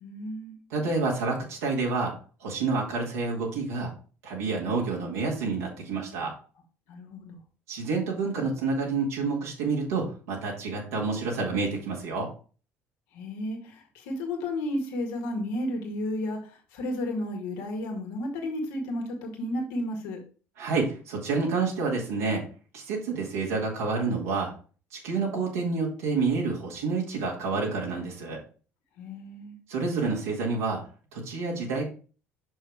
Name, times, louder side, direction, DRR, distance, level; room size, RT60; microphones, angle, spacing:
voice 1, 0.0-0.6 6.9-7.4 13.1-20.2 29.0-29.5, left 1 dB, 70° left, 2 dB, 2.0 m, -32 dB
voice 2, 0.7-2.1 2.4-3.9 4.2-6.3 7.7-12.3 20.6-22.4 22.7-24.5 24.9-28.4 29.7-30.8 31.1-31.8, right 4 dB, 80° right, -3 dB, 2.2 m, -28 dB
6.3 x 6.0 x 3.5 m, 0.38 s
hypercardioid pair, 60°, 8 cm